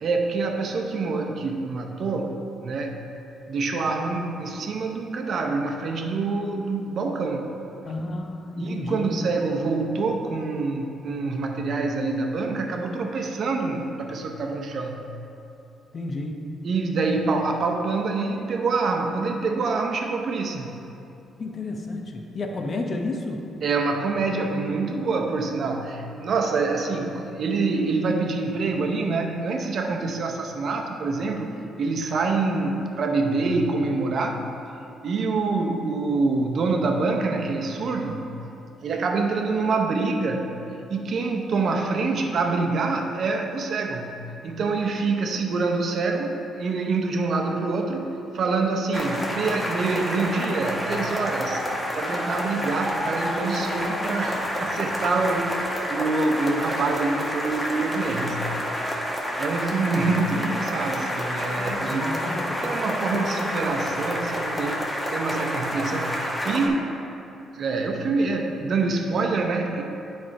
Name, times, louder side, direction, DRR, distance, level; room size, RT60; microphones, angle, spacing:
voice 1, 0.0-2.4 2.6-3.0 3.5-7.5 8.6-15.1 16.6-20.7 23.6-34.4 35.0-38.2 38.8-40.6 40.9-44.2 44.4-51.6 51.9-58.4 59.4-62.1 62.6-67.0 67.5-69.8, right 3 dB, 60° right, 3 dB, 0.7 m, -26 dB
voice 2, 7.9-9.1 15.9-16.4 21.4-23.5 61.6-62.8 63.1-63.2, left 2 dB, 45° left, 2 dB, 0.8 m, -31 dB
sound 1, 48.9-66.7, equal, 10° left, 1.0 m, -29 dB
9.4 x 3.4 x 4.4 m, 2.7 s
cardioid pair, 90°, 0 cm